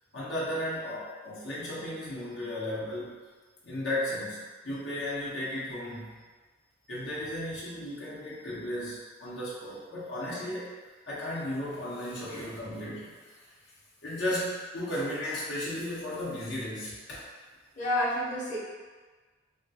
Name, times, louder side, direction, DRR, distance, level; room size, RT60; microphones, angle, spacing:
voice 1, 0.1-3.2 3.6-6.2 6.9-10.7 11.1-13.5 14.0-17.3, left 1 dB, 75° left, -8 dB, 0.8 m, -35 dB
voice 2, 17.7-18.6, left 1 dB, 40° left, -9 dB, 0.9 m, -29 dB
3.5 x 2.3 x 2.8 m, 1.4 s
head